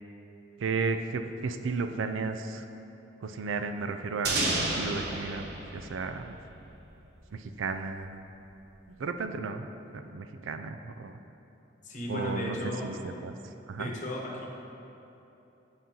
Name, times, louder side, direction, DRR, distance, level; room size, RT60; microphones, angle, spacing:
voice 1, 0.6-2.6 3.2-5.4 5.7-6.4 7.3-8.2 8.9-9.7 9.9-11.1 12.1-12.6 12.8-13.4 13.7-13.9, right 4 dB, 85° right, 8 dB, 0.4 m, -34 dB
sound 1, 4.2-7.0, right 2 dB, 60° right, 0.9 m, -32 dB
voice 2, 11.8-12.9 13.8-14.4, left 1 dB, 40° left, -2 dB, 1.0 m, -35 dB
9.8 x 5.4 x 2.9 m, 3.0 s
head